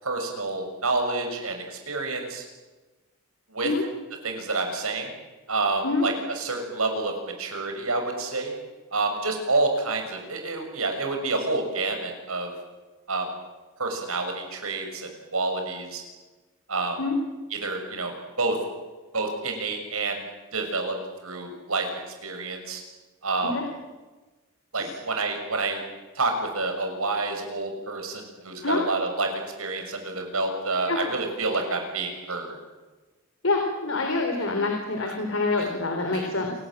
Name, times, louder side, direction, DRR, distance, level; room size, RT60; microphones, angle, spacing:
voice 1, 0.0-2.5 3.5-3.7 4.2-5.1 5.5-8.5 8.9-12.5 13.1-13.3 13.8-16.0 16.7-17.0 17.5-18.6 19.1-20.2 20.5-20.9 21.2-21.9 22.2-22.8 23.2-23.5 24.7-25.8 26.1-29.3 29.6-32.6 35.0-35.1 35.6-35.7 36.1-36.3, right 3 dB, 85° right, 4 dB, 6.4 m, -28 dB
voice 2, 33.4-36.5, left 3 dB, 65° left, 3 dB, 3.9 m, -26 dB
28.0 x 18.0 x 9.1 m, 1.2 s
head